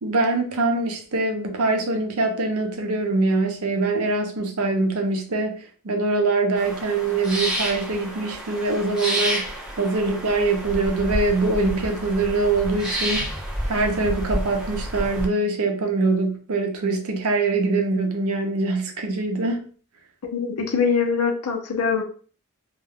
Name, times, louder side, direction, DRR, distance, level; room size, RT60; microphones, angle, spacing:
voice 1, 0.0-13.3 13.7-19.7, right 3 dB, 75° right, 0.6 m, -23 dB
sound 1, 6.5-15.3, equal, 5° right, 0.6 m, -29 dB
voice 2, 20.2-22.0, left 5 dB, 90° left, 0.7 m, -23 dB
2.4 x 2.2 x 3.4 m
head